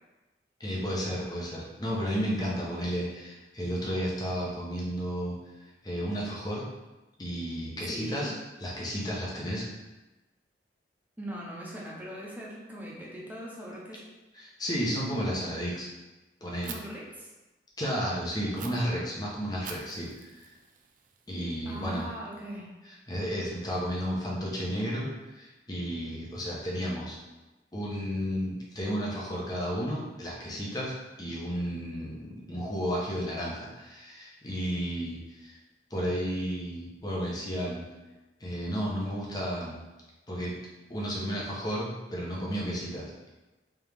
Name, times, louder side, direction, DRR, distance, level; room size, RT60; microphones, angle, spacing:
voice 1, 0.6-6.7 7.2-8.3 8.6-9.6 14.3-15.9 16.4-16.7 17.8-20.5 21.3-22.1 23.1-27.2 27.7-35.6 35.9-37.9 38.4-39.8 40.3-40.6 40.9-43.3, equal, 25° left, -4 dB, 0.8 m, -33 dB
voice 2, 7.8-8.3 11.2-14.0 16.7-17.3 21.6-22.7, equal, 10° right, -4 dB, 0.8 m, -40 dB
Fire, 16.6-16.8 18.6-18.7 19.6-21.6, right 7 dB, 50° right, 0.4 m, -45 dB
3.5 x 2.9 x 3.4 m, 1.1 s
head